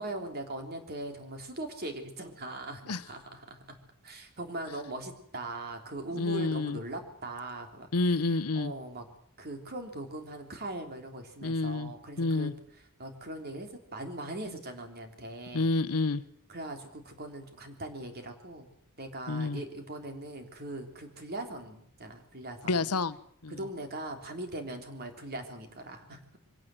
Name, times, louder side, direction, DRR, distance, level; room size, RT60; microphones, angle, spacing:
voice 1, 0.0-3.8 4.0-7.9 8.5-9.0 9.4-12.5 13.0-15.7 16.5-18.7 19.0-22.9 23.5-26.4, right 1 dB, 45° right, 5 dB, 3.4 m, -40 dB
voice 2, 6.2-6.8 7.9-8.7 11.4-12.5 15.5-16.2 19.3-19.6 22.6-23.2 23.4-23.6, left 3 dB, 90° left, 14 dB, 1.0 m, -29 dB
24.0 x 17.0 x 7.7 m, 0.71 s
head